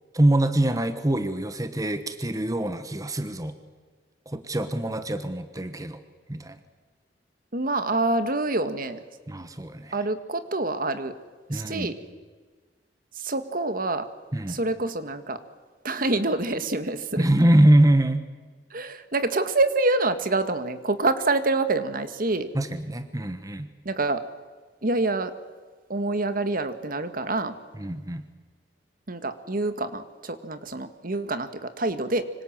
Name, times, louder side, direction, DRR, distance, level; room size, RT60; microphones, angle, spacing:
voice 1, 0.1-3.5 4.3-6.0 6.3-6.6 9.3-10.0 11.5-11.9 14.3-14.6 17.2-18.2 22.5-23.7 27.8-28.2, right 1 dB, 20° right, 9 dB, 1.3 m, -23 dB
voice 2, 7.5-9.0 9.9-11.2 11.5-12.0 13.1-14.1 14.5-15.4 15.8-17.2 18.7-22.5 23.9-24.2 24.8-25.4 25.9-27.6 29.1-32.3, right 2 dB, 55° right, 10 dB, 1.7 m, -26 dB
25.5 x 25.5 x 7.4 m, 1.4 s
head